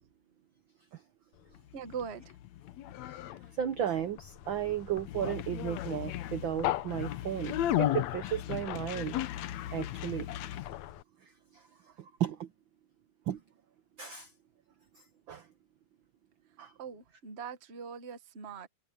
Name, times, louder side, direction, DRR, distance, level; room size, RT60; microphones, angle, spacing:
Conversation, 1.5-11.0, left 13 dB, 75° left, 2.0 m, -35 dB
voice 1, 1.7-2.4 16.8-18.7, right 6 dB, 35° right, 1.0 m, -41 dB
voice 2, 3.6-9.2 9.7-10.3 10.5-10.6 11.2-11.6 12.0-12.5 13.3-13.4 14.0-14.3 15.3-15.5 16.6-16.7, right 10 dB, 70° right, 1.1 m, -34 dB
omnidirectional pair, 3.4 m